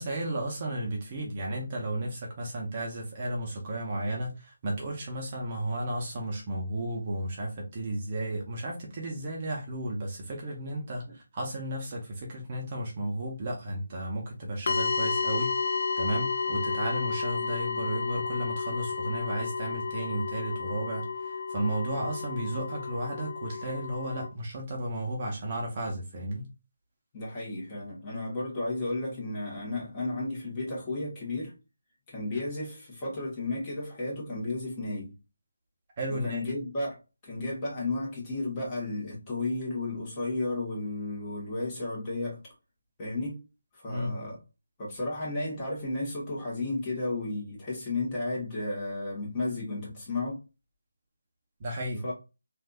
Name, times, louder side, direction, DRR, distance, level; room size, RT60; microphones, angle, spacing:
voice 1, 0.0-15.5 16.0-26.4 36.0-36.4 43.9-44.2 51.6-52.0, right 1 dB, 30° right, 0.8 m, -33 dB
sound 1, 14.7-24.3, left 4 dB, 55° left, 0.4 m, -32 dB
voice 2, 27.1-31.5 32.1-35.1 36.1-37.0 37.2-42.4 43.0-43.4 43.7-44.4 44.8-50.4 52.0-52.1, left 2 dB, 20° left, 1.5 m, -33 dB
3.3 x 2.6 x 2.4 m
figure-of-eight pair, 165°, 0 cm